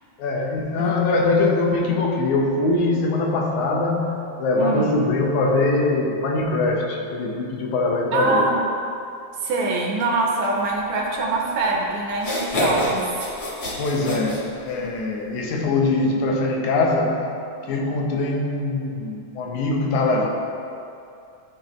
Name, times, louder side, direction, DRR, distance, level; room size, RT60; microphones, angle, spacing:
voice 1, 0.2-8.5 13.8-17.3 17.7-20.3, left 2 dB, 80° left, 0 dB, 2.3 m, -22 dB
voice 2, 4.6-4.9 8.1-8.7 9.4-13.2, right 2 dB, 70° right, -1 dB, 2.2 m, -24 dB
sound 1, 11.6-11.7 12.1-15.0, equal, 45° left, 1.3 m, -26 dB
13.0 x 5.2 x 3.1 m, 2.6 s
omnidirectional pair, 3.4 m